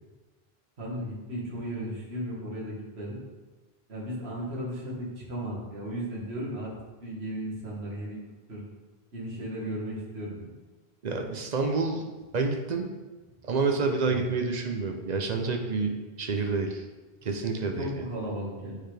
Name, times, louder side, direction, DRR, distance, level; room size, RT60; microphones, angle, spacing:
voice 1, 0.8-3.2 3.9-6.7 7.0-8.2 8.5-8.6 9.1-10.5 14.1-14.2 17.8-18.8, equal, 80° right, -5 dB, 1.9 m, -35 dB
voice 2, 11.0-12.0 12.3-12.9 13.5-16.8 17.2-18.0, right 4 dB, 50° right, 3 dB, 0.7 m, -28 dB
9.2 x 3.9 x 3.4 m, 1.2 s
omnidirectional pair, 1.1 m